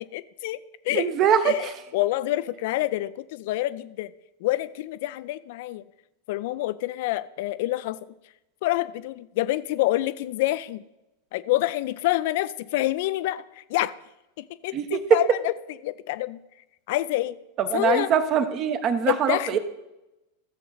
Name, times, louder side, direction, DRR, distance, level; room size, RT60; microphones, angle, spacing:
voice 1, 0.1-0.6 0.8-1.1 1.4-4.1 4.4-5.8 6.3-8.0 8.6-10.8 11.3-13.9 14.4-15.5 15.8-16.4 16.9-17.4 17.7-18.1 19.1-19.6, left 16 dB, 50° left, 16 dB, 0.4 m, -27 dB
voice 2, 0.9-1.7 14.7-15.2 17.6-19.6, right 8 dB, 35° right, 10 dB, 1.0 m, -23 dB
14.5 x 7.5 x 4.1 m, 0.95 s
figure-of-eight pair, 90°, 0 cm